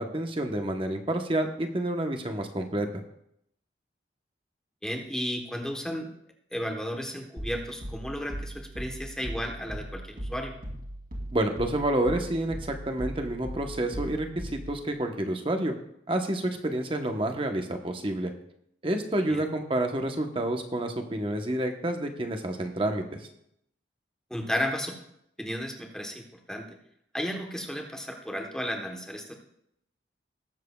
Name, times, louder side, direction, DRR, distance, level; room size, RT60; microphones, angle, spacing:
voice 1, 0.0-2.9 11.3-15.7 16.1-18.3 18.8-23.2, right 1 dB, 30° right, 5 dB, 0.9 m, -29 dB
voice 2, 4.8-6.1 6.5-10.5 19.3-19.4 24.3-25.0 25.4-26.7 27.1-29.3, equal, 5° left, 2 dB, 1.0 m, -33 dB
sound 1, 7.4-14.9, right 1 dB, 50° right, 2.9 m, -39 dB
19.5 x 7.5 x 2.3 m, 0.76 s
head